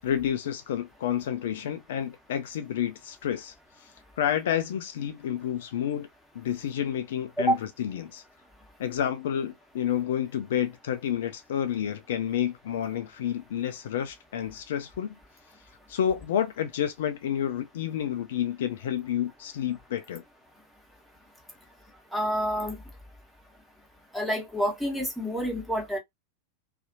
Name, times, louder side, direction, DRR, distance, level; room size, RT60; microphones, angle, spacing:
voice 1, 0.0-3.9 4.2-6.1 6.3-8.2 8.8-15.1 15.9-20.2, left 10 dB, 60° left, 0.4 m, -30 dB
voice 2, 22.1-22.8 24.1-26.0, right 1 dB, ahead, 1.1 m, -28 dB
2.7 x 2.4 x 2.5 m
figure-of-eight pair, 90°, 0 cm